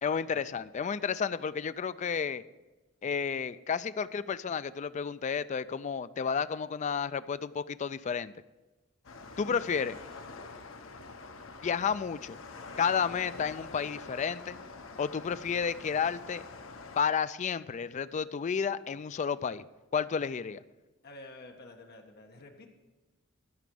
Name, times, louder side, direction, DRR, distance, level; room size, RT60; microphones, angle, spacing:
voice 1, 0.0-2.4 3.0-8.3 9.4-10.0 11.6-12.4 12.8-14.6 15.0-16.4 17.0-19.7 19.9-20.6, left 6 dB, 35° left, 14 dB, 0.3 m, -31 dB
sound 1, 9.0-17.0, left 3 dB, 75° left, 0.9 m, -46 dB
voice 2, 21.0-22.7, left 2 dB, 50° left, 3 dB, 1.4 m, -49 dB
12.5 x 5.1 x 7.6 m, 1.1 s
head